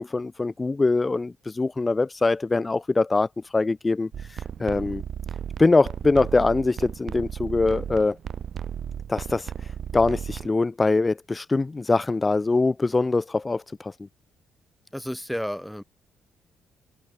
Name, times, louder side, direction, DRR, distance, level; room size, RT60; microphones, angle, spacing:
voice 1, 0.0-5.0 5.6-8.2 9.1-13.9, left 3 dB, 25° left, 0.4 m, -23 dB
sound 1, 4.1-10.5, right 8 dB, 60° right, 1.4 m, -35 dB
voice 2, 4.6-5.0 14.9-15.8, equal, ahead, 1.0 m, -33 dB
cardioid pair, 90°, 0 cm